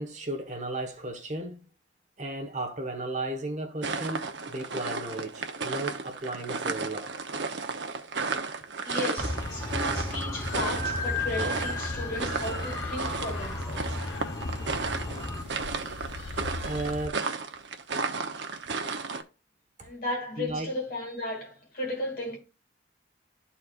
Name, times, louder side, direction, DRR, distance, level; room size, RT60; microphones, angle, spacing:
voice 1, 0.0-1.6 2.2-7.1 16.6-17.3 19.8-19.9 20.4-20.7, right 2 dB, 40° right, 1.3 m, -34 dB
sound 1, 3.8-19.2, right 4 dB, 75° right, 0.8 m, -34 dB
voice 2, 8.8-14.0 19.8-22.4, left 2 dB, 50° left, 2.8 m, -35 dB
sound 2, 9.2-15.4, left 2 dB, 20° left, 1.0 m, -34 dB
sound 3, 9.4-17.1, left 3 dB, 70° left, 0.5 m, -41 dB
12.5 x 4.2 x 2.5 m
head